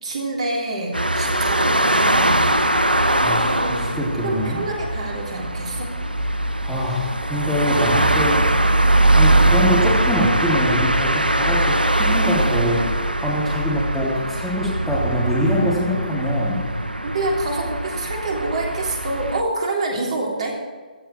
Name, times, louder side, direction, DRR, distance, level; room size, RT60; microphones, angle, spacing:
voice 1, 0.0-2.6 3.4-3.8 4.2-5.9 17.0-20.6, right 2 dB, 45° right, 0 dB, 3.3 m, -27 dB
sound 1, 0.9-19.4, right 1 dB, 85° right, 1.2 m, -21 dB
voice 2, 3.2-4.6 6.6-8.4 9.2-12.9 13.2-16.6, equal, ahead, -7 dB, 3.3 m, -24 dB
16.5 x 13.5 x 4.7 m, 1.5 s
figure-of-eight pair, 140°, 5 cm